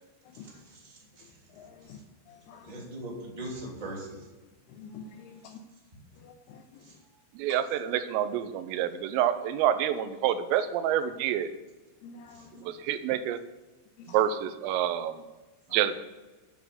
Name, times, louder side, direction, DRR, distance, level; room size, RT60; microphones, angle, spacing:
voice 1, 0.3-1.5 1.8-2.0 2.6-4.3 5.5-5.6 6.8-6.9 12.3-12.5 14.0-14.2, right 1 dB, 15° right, -3 dB, 1.8 m, -42 dB
voice 2, 2.3-2.9 4.8-5.6 6.2-6.6 7.5-7.6 12.0-12.7, left 5 dB, 85° left, 3 dB, 2.3 m, -47 dB
voice 3, 7.4-11.5 12.7-13.4 14.1-15.1 15.7-15.9, right 10 dB, 85° right, 10 dB, 3.4 m, -27 dB
9.4 x 8.1 x 8.1 m, 1.2 s
omnidirectional pair, 5.8 m